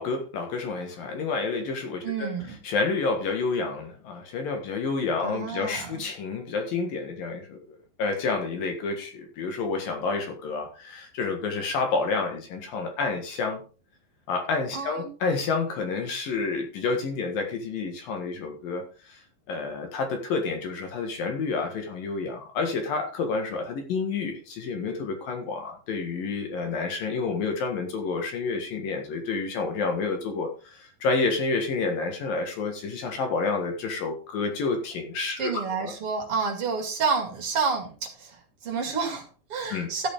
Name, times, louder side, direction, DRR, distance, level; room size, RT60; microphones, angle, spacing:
voice 1, 0.0-2.3 2.6-7.6 8.0-13.6 14.3-19.2 19.5-35.5 35.8-35.9 39.7-39.9, left 4 dB, 60° left, 4 dB, 3.1 m, -29 dB
voice 2, 2.0-2.6 5.2-6.0 14.7-15.1 35.4-37.9 38.2-40.1, right 5 dB, 40° right, 3 dB, 2.6 m, -29 dB
14.0 x 7.8 x 3.7 m, 0.35 s
omnidirectional pair, 5.0 m